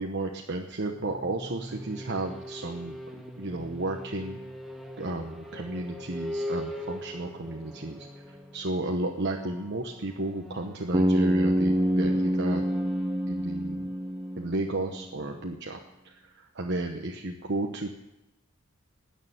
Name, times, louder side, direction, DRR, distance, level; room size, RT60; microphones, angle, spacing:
voice 1, 0.0-4.4 5.0-12.7 13.3-13.9 14.4-15.8 16.0-18.0, right 2 dB, 50° right, 1 dB, 1.1 m, -33 dB
sound 1, 0.8-15.4, equal, ahead, 1.5 m, -42 dB
Bass guitar, 10.9-15.0, equal, 25° right, 0.6 m, -26 dB
19.5 x 6.7 x 9.3 m, 0.92 s
head